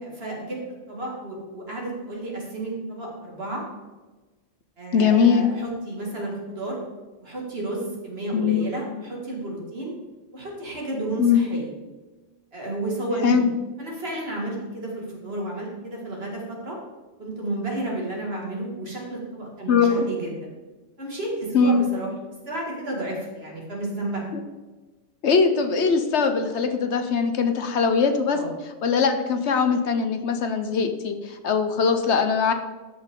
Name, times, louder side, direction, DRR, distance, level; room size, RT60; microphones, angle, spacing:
voice 1, 0.0-3.6 4.8-6.8 7.2-9.9 10.3-11.7 12.5-13.4 13.8-16.8 17.2-20.5 21.0-22.1 22.5-24.2 28.3-28.5, right 1 dB, 55° right, -2 dB, 2.5 m, -32 dB
voice 2, 4.9-5.4 8.3-8.6 11.2-11.4 13.2-13.5 19.7-20.1 21.5-21.8 24.3-24.4 25.2-28.4 28.8-32.5, left 5 dB, 65° left, 7 dB, 1.0 m, -21 dB
13.0 x 5.7 x 3.7 m, 1.2 s
omnidirectional pair, 1.3 m